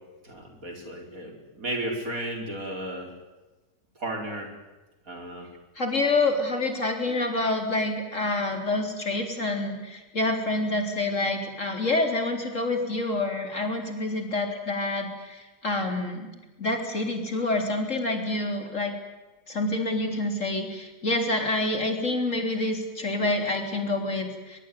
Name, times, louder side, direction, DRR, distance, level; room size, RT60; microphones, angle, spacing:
voice 1, 0.2-3.1 4.0-4.5 5.1-5.5, right 1 dB, 50° right, 2 dB, 5.1 m, -34 dB
voice 2, 5.8-16.3 16.6-19.0 19.5-24.6, left 2 dB, 45° left, 4 dB, 4.1 m, -27 dB
23.0 x 22.0 x 9.5 m, 1.1 s
omnidirectional pair, 1.9 m